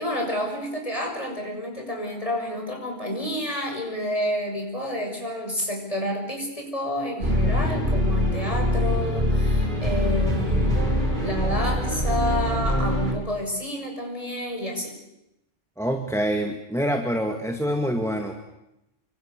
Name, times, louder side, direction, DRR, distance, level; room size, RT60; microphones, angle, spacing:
voice 1, 0.0-14.9, equal, 30° left, 1 dB, 6.9 m, -29 dB
sound 1, 7.2-13.1, equal, 40° right, 5.6 m, -23 dB
voice 2, 15.8-18.4, equal, ahead, 4 dB, 2.1 m, -26 dB
29.0 x 25.0 x 6.8 m, 0.87 s
omnidirectional pair, 1.3 m